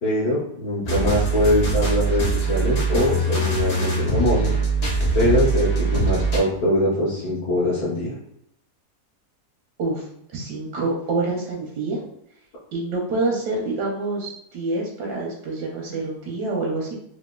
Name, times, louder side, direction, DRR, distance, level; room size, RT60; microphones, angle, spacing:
voice 1, 0.0-4.5 5.1-8.1, left 1 dB, 65° left, -10 dB, 1.6 m, -22 dB
sound 1, 0.8-6.4, right 3 dB, 45° left, 1.0 m, -22 dB
voice 2, 10.3-12.0 12.7-16.9, right 3 dB, 90° right, -2 dB, 1.3 m, -27 dB
4.0 x 2.2 x 2.2 m, 0.74 s
omnidirectional pair, 1.7 m